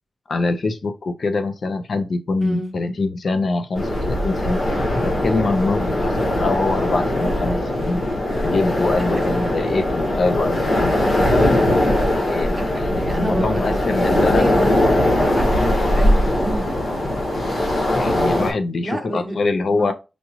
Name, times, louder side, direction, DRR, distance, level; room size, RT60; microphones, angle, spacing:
voice 1, 0.3-4.6 5.0-8.0 8.4-11.0 12.3-14.6 15.5-15.8 18.0-19.9, left 3 dB, 60° left, 0.5 m, -24 dB
voice 2, 2.4-2.7 5.8-6.0 9.2-9.4 12.5-13.8 14.1-16.7 18.8-19.4 19.8-19.9, right 1 dB, 15° right, 0.8 m, -29 dB
sound 1, 3.7-18.5, left 1 dB, 85° left, 1.4 m, -20 dB
5.0 x 2.4 x 3.0 m
wide cardioid pair, 165°, 0 cm